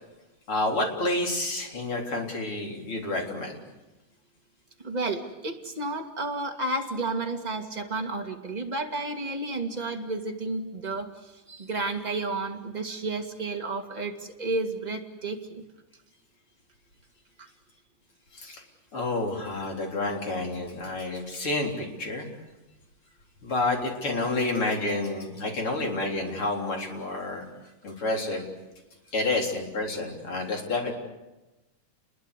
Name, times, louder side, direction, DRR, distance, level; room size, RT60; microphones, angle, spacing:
voice 1, 0.5-3.6 18.3-18.6 18.9-22.3 23.4-27.4 27.8-28.5 29.1-30.9, left 2 dB, 40° left, 1 dB, 4.5 m, -29 dB
voice 2, 4.8-15.6 17.4-17.5, right 2 dB, 15° right, 2 dB, 2.0 m, -32 dB
29.5 x 21.5 x 8.3 m, 1.1 s
omnidirectional pair, 3.7 m